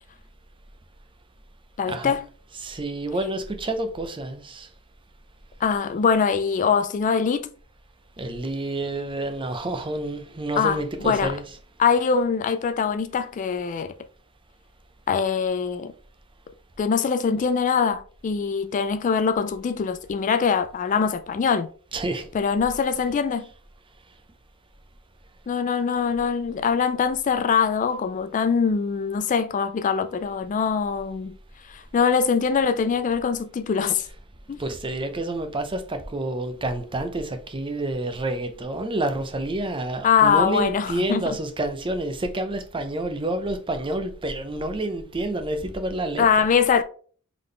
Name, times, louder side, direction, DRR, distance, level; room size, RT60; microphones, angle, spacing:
voice 1, 1.8-2.3 5.6-7.5 10.6-11.4 11.8-13.9 15.1-15.9 16.8-21.7 22.3-23.5 25.5-31.4 31.7-34.1 34.5-34.6 40.0-41.4 46.2-46.8, left 6 dB, 35° left, 0.3 m, -23 dB
voice 2, 2.6-4.7 8.2-11.4 21.9-22.3 34.6-46.3, right 1 dB, 25° right, 0.6 m, -28 dB
3.8 x 3.6 x 3.2 m
head